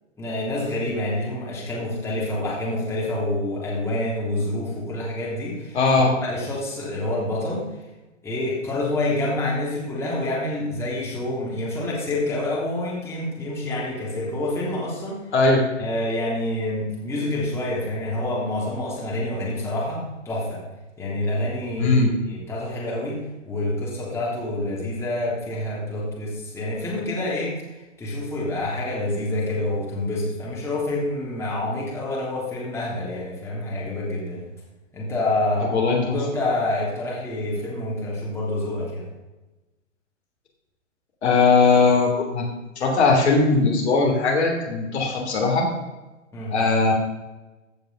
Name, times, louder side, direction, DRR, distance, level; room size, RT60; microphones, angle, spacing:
voice 1, 0.2-5.8 6.2-7.6 8.2-15.2 15.8-20.6 21.0-34.5 34.9-35.7 36.1-39.1 46.3-46.5, left 1 dB, 5° left, -6 dB, 3.3 m, -27 dB
voice 2, 5.7-6.1 15.3-15.6 21.8-22.1 35.7-36.1 41.2-42.4 42.8-45.7 46.5-46.9, left 3 dB, 60° left, 0 dB, 3.2 m, -19 dB
15.5 x 5.3 x 5.8 m, 1.1 s
figure-of-eight pair, 120°, 38 cm